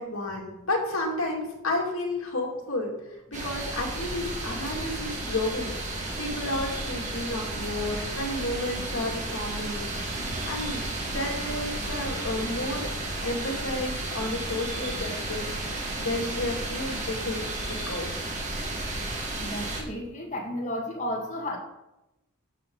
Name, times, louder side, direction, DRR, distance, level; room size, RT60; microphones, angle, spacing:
voice 1, 0.0-2.9 3.3-10.2 10.5-10.9 11.1-12.9 13.2-18.1, left 1 dB, 75° left, -1 dB, 2.6 m, -32 dB
sound 1, 3.3-19.8, right 2 dB, 35° right, 1.9 m, -33 dB
voice 2, 19.4-21.6, left 1 dB, 35° left, -1 dB, 2.1 m, -33 dB
12.0 x 7.3 x 4.0 m, 0.91 s
head